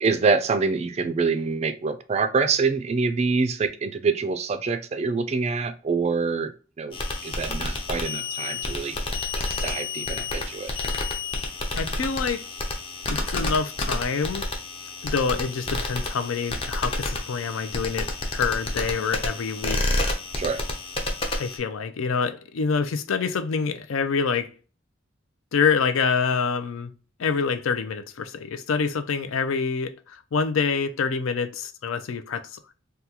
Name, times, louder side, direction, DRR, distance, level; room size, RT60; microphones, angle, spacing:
voice 1, 0.0-6.5 6.8-7.0 7.2-9.0 9.3-10.7 20.4-20.6, right 4 dB, 35° right, 0.3 m, -25 dB
sound 1, 6.9-21.6, left 2 dB, 30° left, 0.6 m, -30 dB
voice 2, 11.7-12.5 13.1-14.5 15.0-19.8 21.4-24.5 25.5-26.9 27.2-32.7, left 5 dB, 85° left, 0.4 m, -26 dB
3.5 x 2.3 x 2.8 m
head